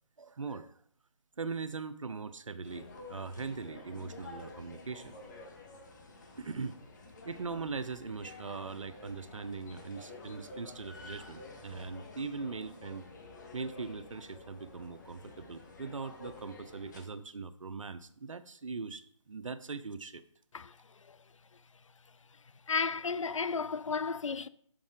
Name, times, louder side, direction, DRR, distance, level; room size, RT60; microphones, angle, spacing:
voice 1, 0.2-0.7 1.4-5.1 6.4-6.8 7.2-13.0 13.5-20.2, right 4 dB, 70° right, 0.7 m, -40 dB
sound 1, 2.6-17.0, left 3 dB, 35° left, 1.1 m, -50 dB
voice 2, 22.7-24.5, left 5 dB, 70° left, 0.4 m, -32 dB
7.3 x 6.2 x 3.6 m
figure-of-eight pair, 155°, 17 cm